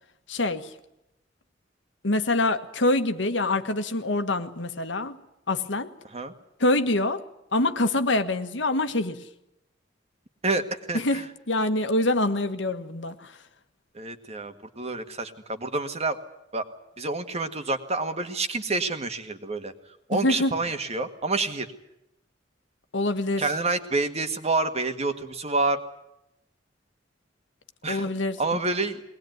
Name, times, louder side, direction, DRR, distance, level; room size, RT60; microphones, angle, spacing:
voice 1, 0.3-0.7 2.0-5.2 5.5-5.9 6.6-7.2 7.5-9.2 10.9-13.4 20.2-20.5 22.9-23.4 27.9-28.6, left 2 dB, 75° left, 9 dB, 1.5 m, -25 dB
voice 2, 10.4-11.2 13.9-16.2 16.5-16.7 17.0-19.7 20.1-21.7 23.4-25.8 27.8-28.1 28.4-29.0, right 3 dB, 35° right, 8 dB, 1.8 m, -28 dB
21.5 x 19.5 x 9.4 m, 0.85 s
head